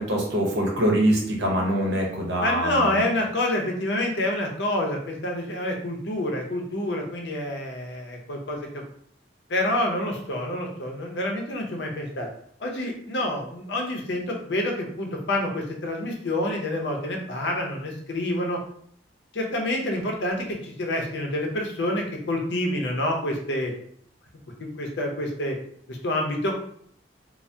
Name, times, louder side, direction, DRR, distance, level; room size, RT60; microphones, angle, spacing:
voice 1, 0.0-3.0, right 1 dB, 65° right, 0 dB, 0.8 m, -24 dB
voice 2, 2.4-8.8 9.5-12.3 12.6-18.6 19.3-23.7 24.6-25.6 25.9-26.5, left 1 dB, 70° left, 1 dB, 0.6 m, -27 dB
2.6 x 2.0 x 3.2 m, 0.63 s
head